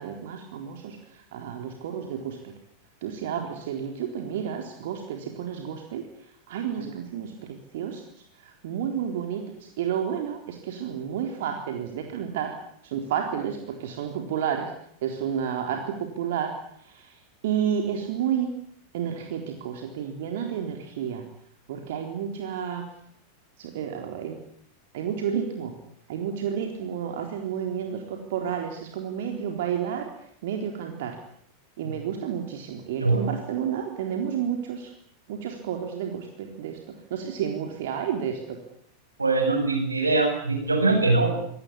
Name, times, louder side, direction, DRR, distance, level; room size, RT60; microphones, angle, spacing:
voice 1, 0.0-2.4 3.0-6.1 6.5-8.0 8.4-12.5 12.8-14.7 15.0-17.1 17.4-18.5 18.9-21.2 21.7-22.8 23.6-24.4 24.9-25.7 26.1-30.1 30.4-31.2 31.8-34.9 35.3-36.8 37.1-38.6, right 8 dB, 55° right, 3 dB, 3.9 m, -31 dB
voice 2, 39.2-41.5, right 3 dB, 80° right, 5 dB, 7.6 m, -22 dB
26.0 x 19.5 x 10.0 m, 0.68 s
figure-of-eight pair, 90°, 0 cm